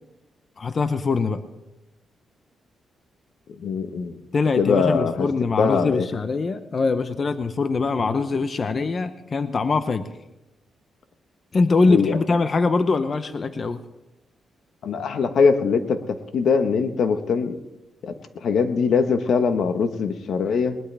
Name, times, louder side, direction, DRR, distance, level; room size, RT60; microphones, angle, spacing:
voice 1, 0.6-1.4 4.3-10.0 11.5-13.8, left 4 dB, 40° left, 10 dB, 0.8 m, -23 dB
voice 2, 3.6-4.2 4.6-5.3 5.6-6.1 11.9-12.2 14.8-17.6 18.0-18.1 18.4-20.8, left 5 dB, 70° left, 8 dB, 1.3 m, -22 dB
20.5 x 19.5 x 3.5 m, 0.94 s
cardioid pair, 95°, 0 cm